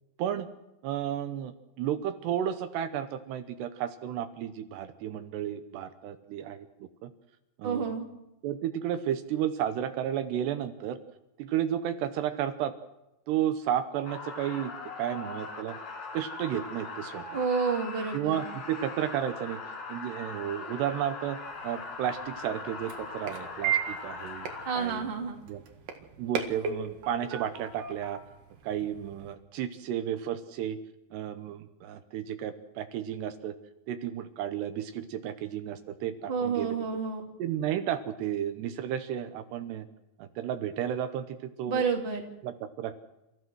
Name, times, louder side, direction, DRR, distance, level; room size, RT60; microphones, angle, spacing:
voice 1, 0.8-7.1 7.6-7.9 8.4-11.0 11.4-12.7 13.3-14.7 15.0-15.8 16.1-17.4 18.1-19.6 19.9-24.5 24.7-25.1 25.5-25.6 26.2-28.2 28.6-30.8 31.1-33.5 33.9-36.8 37.4-39.9 40.2-41.8 42.4-42.9, right 10 dB, 75° right, 9 dB, 2.9 m, -32 dB
voice 2, 7.6-8.1 17.3-18.4 24.6-25.4 36.3-37.3 41.7-42.3, right 5 dB, 20° right, 2 dB, 1.7 m, -29 dB
sound 1, 14.0-24.8, left 3 dB, 65° left, 4.8 m, -40 dB
sound 2, 21.4-29.3, right 8 dB, 55° right, 3.0 m, -37 dB
29.5 x 15.0 x 6.2 m, 0.95 s
omnidirectional pair, 5.2 m